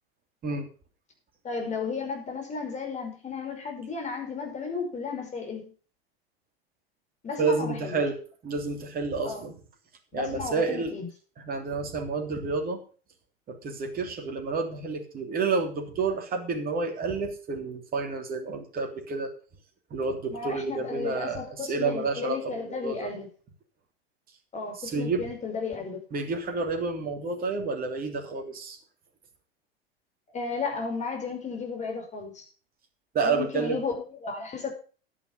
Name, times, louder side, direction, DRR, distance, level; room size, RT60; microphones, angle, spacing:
voice 1, 1.4-5.7 7.2-8.0 9.2-9.5 10.1-11.1 20.3-23.3 24.5-26.0 30.3-32.4 33.2-34.7, left 4 dB, 25° left, 2 dB, 5.5 m, -34 dB
voice 2, 7.4-9.6 10.1-10.9 11.4-12.8 13.5-19.3 19.9-23.1 24.8-25.3 26.1-28.8 33.1-33.8, right 4 dB, 30° right, 4 dB, 3.2 m, -30 dB
11.0 x 10.5 x 5.4 m, 0.37 s
figure-of-eight pair, 85°, 30 cm